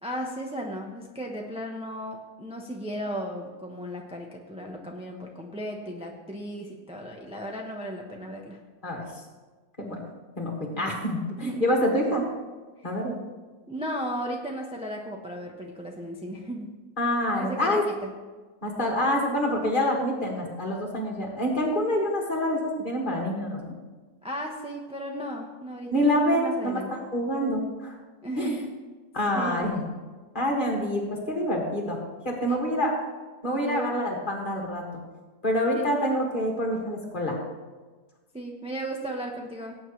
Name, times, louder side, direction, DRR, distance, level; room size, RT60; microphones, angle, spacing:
voice 1, 0.0-8.6 10.7-10.9 11.4-11.7 13.7-16.7 17.4-18.1 24.2-26.9 28.2-28.6 29.3-29.7 32.5-32.6 33.6-34.0 35.7-35.9 38.3-39.8, equal, 5° right, 0 dB, 0.6 m, -35 dB
voice 2, 8.8-9.2 9.8-10.0 10.4-12.2 12.8-13.2 17.0-17.8 18.6-23.7 25.9-28.0 28.4-28.6 29.1-29.8 30.3-32.0 32.2-32.9 33.4-34.8 35.4-37.4, equal, 30° left, -1 dB, 2.2 m, -26 dB
18.0 x 8.7 x 3.2 m, 1.3 s
omnidirectional pair, 1.9 m